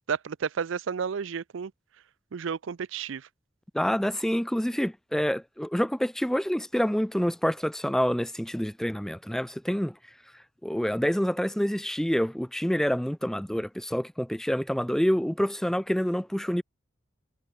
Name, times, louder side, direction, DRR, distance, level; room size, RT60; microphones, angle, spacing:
voice 1, 0.1-1.7 2.3-3.3, right 6 dB, 80° right, 0.5 m, -31 dB
voice 2, 3.7-9.9 10.6-16.6, equal, ahead, 0.4 m, -27 dB
head